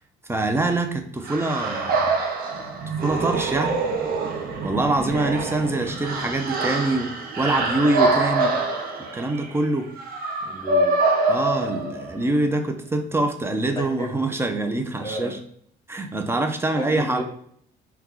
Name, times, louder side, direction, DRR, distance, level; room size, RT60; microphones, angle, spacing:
voice 1, 0.3-2.1 3.0-3.8 4.6-8.6 9.1-9.9 11.3-15.4 15.9-17.2, right 2 dB, 15° right, 5 dB, 0.5 m, -24 dB
sound 1, 1.2-12.3, right 3 dB, 60° right, 0.6 m, -25 dB
voice 2, 10.4-11.0 13.8-14.3 15.0-15.3 16.8-17.2, left 1 dB, 25° left, 1 dB, 1.1 m, -32 dB
3.0 x 2.2 x 3.7 m, 0.64 s
cardioid pair, 100°, 17 cm